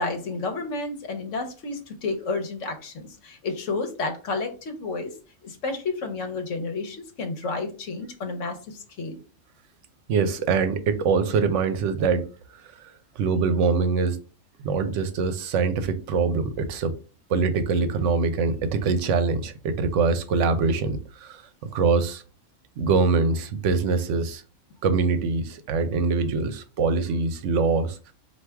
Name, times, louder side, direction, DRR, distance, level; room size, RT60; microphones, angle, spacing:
voice 1, 0.0-5.2 5.4-9.2, left 3 dB, 75° left, 1.2 m, -31 dB
voice 2, 10.1-12.2 12.7-14.2 14.6-16.9 17.3-21.4 21.7-22.2 22.8-24.4 24.8-28.0, right 4 dB, 75° right, 0.9 m, -23 dB
4.5 x 2.6 x 3.3 m
omnidirectional pair, 1.3 m